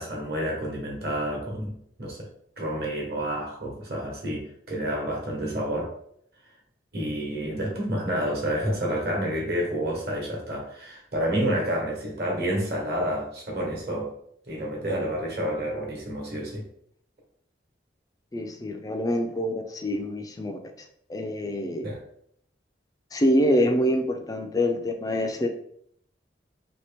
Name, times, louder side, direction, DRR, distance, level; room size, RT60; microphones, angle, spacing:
voice 1, 0.0-2.2 2.6-5.9 6.9-14.1 14.5-16.6 21.8-22.0, equal, 55° right, -1 dB, 1.2 m, -29 dB
voice 2, 18.3-20.6 21.1-21.9 23.1-25.5, equal, 20° left, 5 dB, 0.3 m, -25 dB
2.8 x 2.8 x 3.5 m, 0.67 s
head